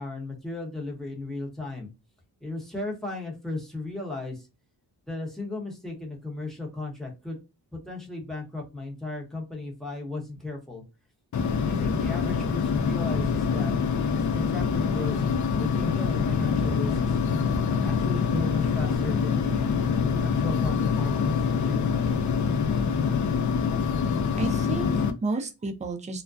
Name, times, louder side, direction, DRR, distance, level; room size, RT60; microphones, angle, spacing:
voice 1, 0.0-1.9 2.4-4.5 5.1-7.4 7.7-10.8 11.6-13.7 14.1-15.2 15.6-17.2 17.8-19.8 20.2-21.9, left 2 dB, ahead, 0 dB, 0.9 m, -35 dB
sound 1, 11.3-25.1, left 5 dB, 45° left, 0.4 m, -25 dB
voice 2, 24.4-26.2, right 3 dB, 20° right, 4 dB, 0.4 m, -32 dB
2.3 x 2.1 x 2.5 m, 0.28 s
wide cardioid pair, 90°, 41 cm